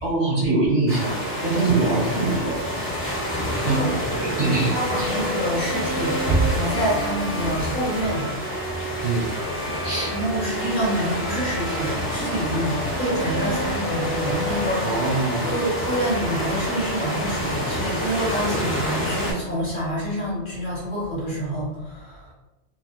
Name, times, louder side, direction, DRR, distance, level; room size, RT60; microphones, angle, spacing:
voice 1, 0.0-2.5 3.6-3.8 4.2-5.1 9.0-9.3 9.8-10.1 14.8-15.6, right 3 dB, 75° right, -4 dB, 1.2 m, -23 dB
sound 1, 0.9-19.3, equal, 15° left, 0.6 m, -28 dB
voice 2, 1.6-2.0 3.6-4.1 4.4-8.3 10.1-14.9 15.5-22.2, right 1 dB, 45° left, -7 dB, 1.1 m, -27 dB
Bowed string instrument, 2.9-17.4, equal, 70° left, 0.9 m, -34 dB
2.6 x 2.2 x 2.2 m, 1.0 s
omnidirectional pair, 1.2 m